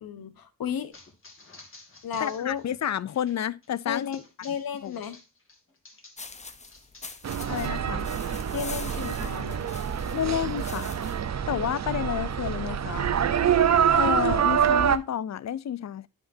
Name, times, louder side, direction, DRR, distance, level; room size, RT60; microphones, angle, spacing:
voice 1, 0.0-0.9 2.0-2.6 3.9-5.2 8.5-9.7, left 8 dB, 85° left, 1.2 m, -33 dB
sound 1, 0.9-6.3 6.6-8.0, left 3 dB, 35° left, 2.2 m, -52 dB
voice 2, 2.2-4.2 4.8-4.9 7.5-8.1 10.1-10.9 11.5-13.1 13.9-16.1, left 10 dB, 50° left, 0.5 m, -30 dB
sound 2, 6.2-11.3, left 3 dB, 20° left, 0.7 m, -44 dB
sound 3, 7.2-15.0, right 8 dB, 50° right, 0.7 m, -25 dB
11.5 x 5.8 x 2.7 m
wide cardioid pair, 145°, 35 cm